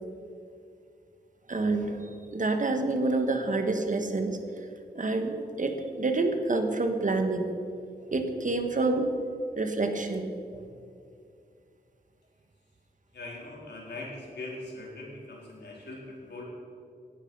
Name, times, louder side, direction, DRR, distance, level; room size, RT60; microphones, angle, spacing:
voice 1, 1.5-4.4 4.9-7.5 8.1-9.1 9.6-10.3, right 3 dB, 50° right, 6 dB, 1.6 m, -28 dB
voice 2, 13.1-16.4, left 2 dB, 80° left, -3 dB, 4.2 m, -41 dB
17.5 x 11.5 x 5.6 m, 2.5 s
wide cardioid pair, 100°, 17 cm